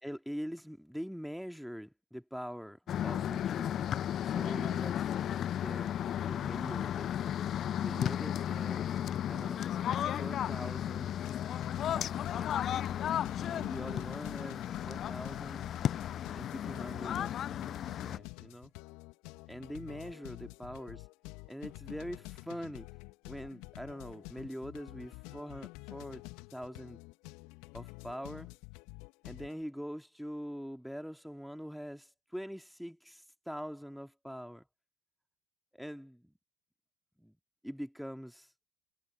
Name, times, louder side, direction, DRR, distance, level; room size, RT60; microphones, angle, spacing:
voice 1, 0.0-3.9 4.2-5.1 5.6-5.9 6.2-7.2 7.8-8.9 9.3-9.7 10.1-11.1 11.9-12.6 13.4-15.7 16.3-18.7 19.5-21.1 21.5-22.9 23.2-26.2 26.5-27.0 27.7-28.5 29.2-34.6 35.7-36.3 37.2-37.4 37.6-38.5, equal, ahead, 2.7 m, -43 dB
sound 1, 2.9-18.2, left 10 dB, 45° left, 0.7 m, -34 dB
sound 2, 10.9-29.6, left 25 dB, 65° left, 2.8 m, -49 dB
hypercardioid pair, 70°, 0 cm